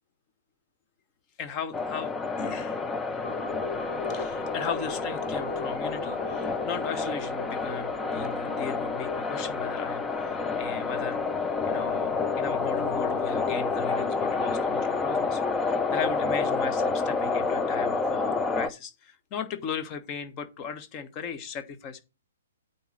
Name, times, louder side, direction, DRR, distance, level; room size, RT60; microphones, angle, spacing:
voice 1, 1.4-2.1 2.4-2.8 4.1-11.2 11.6-15.4 15.9-22.0, left 7 dB, 30° left, 1.3 m, -37 dB
sound 1, 1.7-18.7, left 4 dB, 10° left, 0.7 m, -29 dB
sound 2, 3.2-13.9, left 3 dB, 75° left, 1.1 m, -41 dB
8.9 x 4.2 x 7.0 m
figure-of-eight pair, 125°, 0 cm